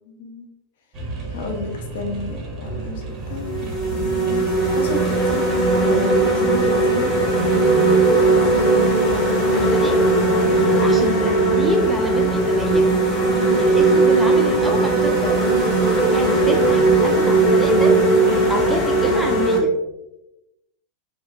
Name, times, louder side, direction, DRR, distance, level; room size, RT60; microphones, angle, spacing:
voice 1, 0.1-0.5 1.3-5.5 5.8-7.1 10.9-11.3, left 3 dB, 55° left, 2 dB, 0.5 m, -31 dB
sound 1, 0.9-19.5, right 1 dB, 30° right, 0.7 m, -34 dB
sound 2, 2.7-2.8 3.4-19.6, right 2 dB, 25° left, 0.8 m, -18 dB
voice 2, 9.0-10.0 10.6-12.9 13.6-15.4 15.9-18.0 18.5-19.7, equal, ahead, 2 dB, 0.4 m, -28 dB
2.8 x 2.4 x 2.4 m, 0.91 s
figure-of-eight pair, 90°, 0 cm